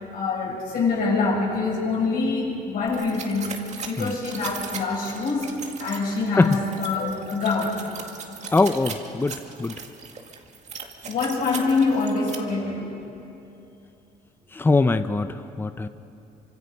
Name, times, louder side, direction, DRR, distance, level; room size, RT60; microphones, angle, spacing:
voice 1, 0.1-3.6 3.8-7.8 11.1-13.0, left 4 dB, 60° left, -4 dB, 7.9 m, -25 dB
sound 1, 2.9-12.4, right 5 dB, 45° right, 2.1 m, -38 dB
voice 2, 8.5-9.7 14.5-15.9, left 3 dB, 15° left, 10 dB, 0.7 m, -22 dB
26.5 x 25.0 x 5.5 m, 2.8 s
cardioid pair, 110°, 17 cm